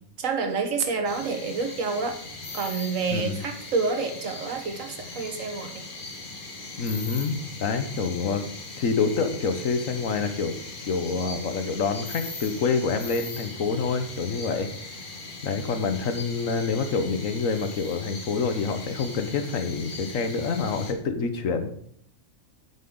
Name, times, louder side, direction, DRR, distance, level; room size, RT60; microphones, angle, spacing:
voice 1, 0.2-2.1 2.5-5.9, right 4 dB, 65° right, 6 dB, 1.4 m, -28 dB
sound 1, 1.0-20.9, left 3 dB, 40° left, 1.4 m, -40 dB
voice 2, 3.1-3.4 6.8-8.4 8.8-10.5 10.8-14.7 15.4-21.7, left 5 dB, 65° left, 8 dB, 1.3 m, -27 dB
9.2 x 7.8 x 3.8 m, 0.64 s
omnidirectional pair, 1.5 m